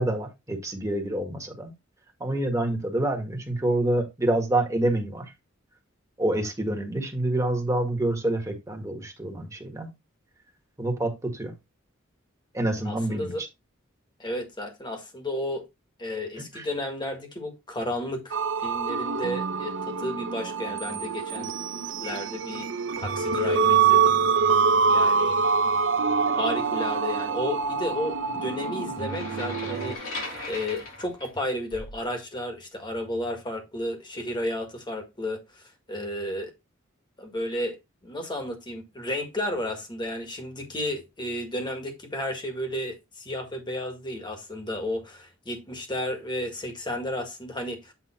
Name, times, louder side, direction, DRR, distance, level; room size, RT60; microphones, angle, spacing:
voice 1, 0.0-1.7 2.2-5.3 6.2-9.9 10.8-11.5 12.5-13.3 16.4-16.7, right 1 dB, 15° right, 1.6 m, -27 dB
voice 2, 12.8-13.4 14.2-15.6 16.0-21.5 22.0-22.7 23.0-24.2 24.9-25.4 26.3-36.5 37.2-37.8 38.0-47.9, left 1 dB, 25° left, 1.7 m, -33 dB
sound 1, 18.3-29.9, right 5 dB, 65° right, 0.6 m, -25 dB
sound 2, 29.0-32.0, left 2 dB, 90° left, 3.0 m, -38 dB
8.4 x 3.4 x 4.3 m
head